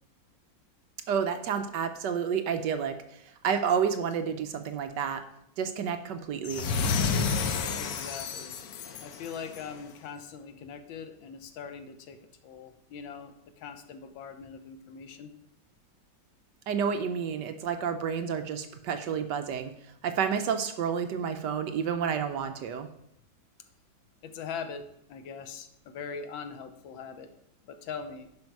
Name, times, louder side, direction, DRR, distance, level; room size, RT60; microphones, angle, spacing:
voice 1, 1.1-3.0 3.4-5.2 5.6-6.7 16.7-19.7 20.0-22.9, right 7 dB, 70° right, 8 dB, 1.2 m, -30 dB
sound 1, 6.4-9.8, left 5 dB, 60° left, 1.0 m, -30 dB
voice 2, 7.7-8.6 9.0-12.2 12.4-15.3 24.2-27.3 27.6-28.3, left 6 dB, 80° left, 8 dB, 1.6 m, -41 dB
10.5 x 5.4 x 4.7 m, 0.75 s
omnidirectional pair, 2.1 m